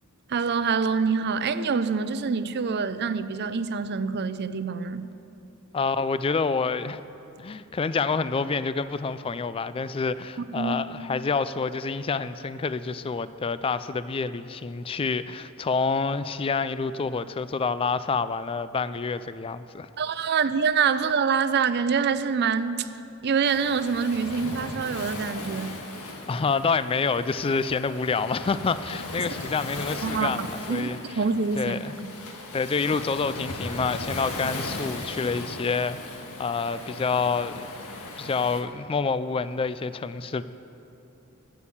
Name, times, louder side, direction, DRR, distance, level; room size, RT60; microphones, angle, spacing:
voice 1, 0.3-5.1 10.4-10.7 20.0-22.9 23.2-25.8 30.0-32.1, right 5 dB, 50° right, 13 dB, 0.5 m, -26 dB
voice 2, 5.7-7.0 7.4-19.9 26.3-30.4 30.7-31.2 31.6-31.9 32.5-37.7 38.2-40.4, left 4 dB, 25° left, 14 dB, 0.3 m, -27 dB
Waves surf, 23.4-38.6, left 2 dB, 85° left, 1.5 m, -37 dB
14.0 x 8.5 x 7.2 m, 2.9 s
head